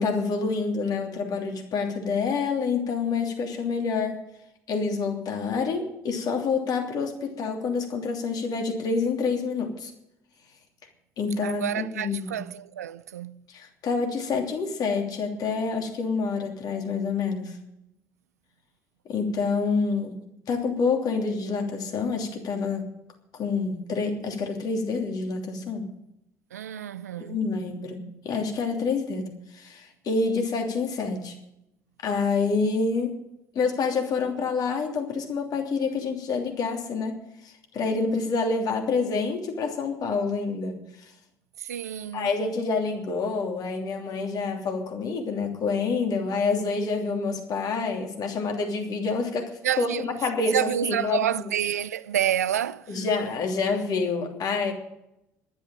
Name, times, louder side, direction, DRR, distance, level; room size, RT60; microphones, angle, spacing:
voice 1, 0.0-4.2 4.7-9.9 11.2-12.4 13.5-17.6 19.0-20.2 20.5-22.9 23.3-25.9 27.2-31.3 32.0-33.2 33.5-37.2 37.4-41.1 42.1-49.5 49.8-51.3 52.9-54.7, left 4 dB, 50° left, 3.0 m, -27 dB
voice 2, 11.4-13.4 26.5-27.4 41.6-42.3 49.6-50.1 50.5-53.0, right 10 dB, 80° right, 0.4 m, -29 dB
11.5 x 9.6 x 9.0 m
figure-of-eight pair, 55°, 8 cm